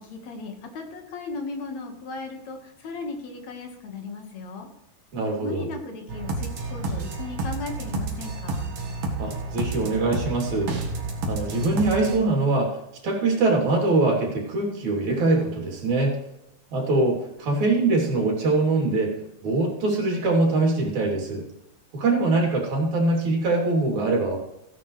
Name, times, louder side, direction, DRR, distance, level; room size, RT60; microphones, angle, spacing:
voice 1, 0.0-4.7 5.4-8.7, left 3 dB, 70° left, 4 dB, 2.8 m, -36 dB
voice 2, 5.1-5.7 9.2-10.7 11.3-12.7 13.0-16.2 16.7-19.1 19.4-21.4 21.9-24.4, right 2 dB, 75° right, -1 dB, 4.3 m, -23 dB
sound 1, 6.1-12.2, right 3 dB, 55° right, 2.4 m, -30 dB
16.5 x 9.8 x 3.2 m, 0.86 s
omnidirectional pair, 3.4 m